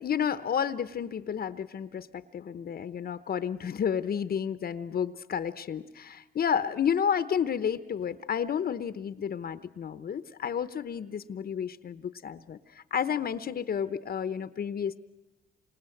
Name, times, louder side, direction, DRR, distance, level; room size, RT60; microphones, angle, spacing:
voice 1, 0.0-15.0, left 8 dB, 50° left, 13 dB, 0.9 m, -31 dB
28.0 x 25.5 x 7.9 m, 1.1 s
cardioid pair, 90°, 20 cm